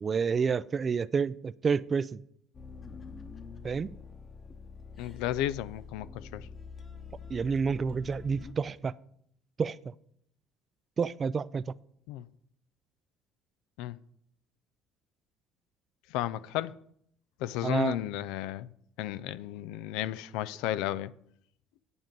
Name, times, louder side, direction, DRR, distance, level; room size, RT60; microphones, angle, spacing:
voice 1, 0.0-2.2 3.6-3.9 7.3-8.9 9.6-9.8 11.0-11.6 17.6-18.0, right 5 dB, 30° right, 0.3 m, -29 dB
sound 1, 2.5-8.5, left 5 dB, 35° left, 1.1 m, -46 dB
voice 2, 5.0-6.5 12.1-12.2 13.8-14.0 16.1-16.7 17.4-18.7 19.0-21.1, left 13 dB, 85° left, 0.4 m, -33 dB
9.7 x 5.2 x 7.5 m
cardioid pair, 105°, 0 cm